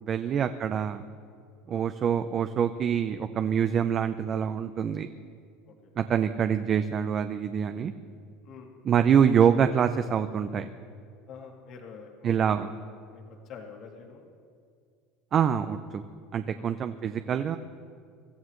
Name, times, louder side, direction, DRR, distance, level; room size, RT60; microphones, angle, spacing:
voice 1, 0.0-1.0 1.7-5.1 6.0-7.9 8.8-10.7 12.2-12.7 15.3-16.0 16.3-17.6, right 8 dB, 40° right, 9 dB, 0.7 m, -25 dB
voice 2, 11.3-12.7 13.1-14.3 16.5-16.7, left 5 dB, 55° left, 1 dB, 2.3 m, -47 dB
24.0 x 14.0 x 3.2 m, 2.2 s
hypercardioid pair, 90°, 0 cm